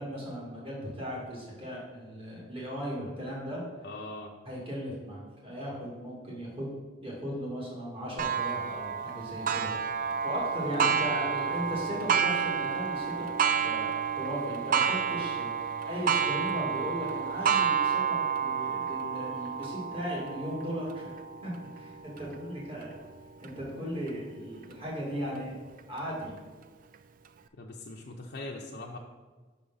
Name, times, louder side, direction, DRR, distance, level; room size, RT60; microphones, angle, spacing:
voice 1, 0.0-3.6 4.4-6.7 7.0-9.7 10.0-13.3 13.6-21.1 21.4-23.0 23.4-25.5 25.9-26.3, equal, 30° right, -5 dB, 2.4 m, -37 dB
voice 2, 3.8-4.3 10.6-10.9 27.6-29.0, left 2 dB, 60° left, -1 dB, 0.6 m, -41 dB
Clock, 8.2-23.5 24.1-24.2 24.7-24.8 25.8-25.9, right 7 dB, 45° right, 0.4 m, -30 dB
5.9 x 4.9 x 5.5 m, 1.4 s
head